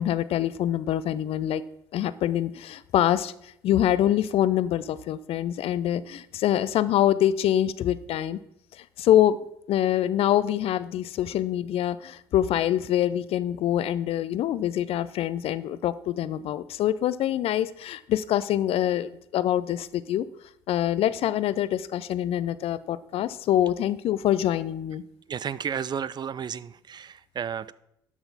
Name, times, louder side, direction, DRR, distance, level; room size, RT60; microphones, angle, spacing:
voice 1, 0.0-1.6 1.9-8.4 8.7-9.4 9.7-20.2 20.7-25.0, left 11 dB, 60° left, 16 dB, 0.4 m, -25 dB
voice 2, 25.3-27.7, right 8 dB, 40° right, 18 dB, 0.4 m, -32 dB
12.0 x 5.9 x 4.0 m, 0.76 s
hypercardioid pair, 50°, 11 cm